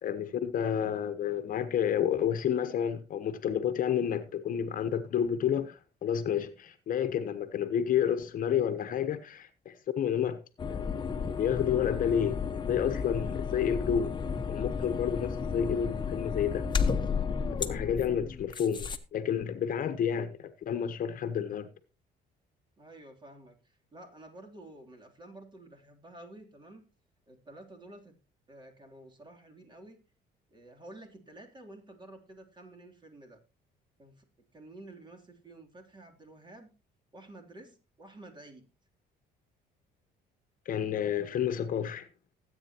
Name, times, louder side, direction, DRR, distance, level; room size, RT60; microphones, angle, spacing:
voice 1, 0.0-10.4 10.7-12.4 12.7-14.1 14.5-16.7 17.7-21.7 40.6-42.1, left 8 dB, 55° left, 1.2 m, -30 dB
sound 1, 10.6-19.0, left 5 dB, 25° left, 1.2 m, -33 dB
voice 2, 22.8-26.9 27.3-28.1 28.5-30.0 30.5-33.4 34.0-34.3 34.5-36.7 37.1-38.7, right 1 dB, 25° right, 3.3 m, -51 dB
19.5 x 8.9 x 3.0 m
cardioid pair, 110°, 17 cm